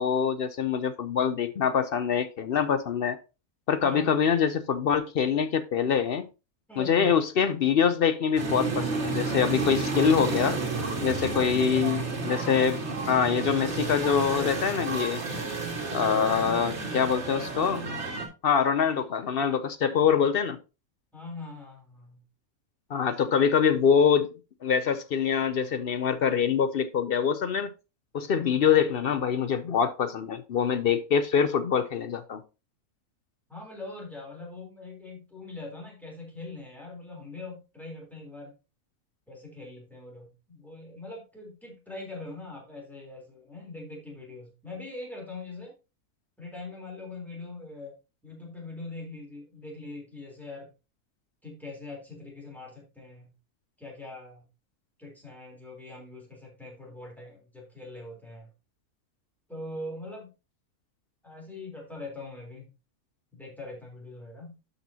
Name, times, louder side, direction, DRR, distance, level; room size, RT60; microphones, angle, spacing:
voice 1, 0.0-3.2 3.7-6.3 6.8-10.6 11.0-12.8 13.1-15.2 15.9-17.8 18.4-20.6 22.9-24.3 24.6-27.7 28.1-32.4, left 7 dB, 65° left, 0.5 m, -24 dB
voice 2, 3.8-4.2 6.7-7.1 21.1-22.2 33.5-38.5 39.3-45.7 46.4-47.9 48.2-50.7 51.4-53.3 53.8-54.5 55.0-58.5 59.5-60.3 61.2-62.7 63.3-64.5, left 2 dB, ahead, 3.4 m, -42 dB
sound 1, 8.4-18.3, right 3 dB, 50° right, 2.1 m, -31 dB
12.0 x 5.5 x 2.8 m
omnidirectional pair, 1.6 m